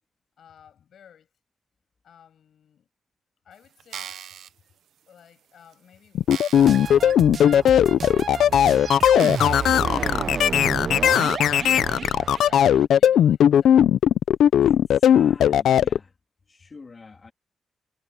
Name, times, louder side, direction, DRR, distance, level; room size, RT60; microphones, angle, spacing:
voice 1, 0.4-1.3 2.0-2.9 3.4-4.2 5.1-7.5 8.4-13.9, left 8 dB, 60° left, 7.4 m, -54 dB
sound 1, 3.8-4.5 5.2-5.3 5.7-5.8 6.3-7.0 7.4-7.5 8.3-8.4 9.2-9.9 10.4-10.5, right 10 dB, 85° right, 0.8 m, -39 dB
sound 2, 6.1-16.0, left 10 dB, 85° left, 0.5 m, -18 dB
sound 3, 6.5-12.9, right 6 dB, 40° right, 0.5 m, -31 dB
voice 2, 14.6-16.2 16.5-17.3, left 4 dB, 25° left, 2.7 m, -46 dB
wide cardioid pair, 175°, 0 cm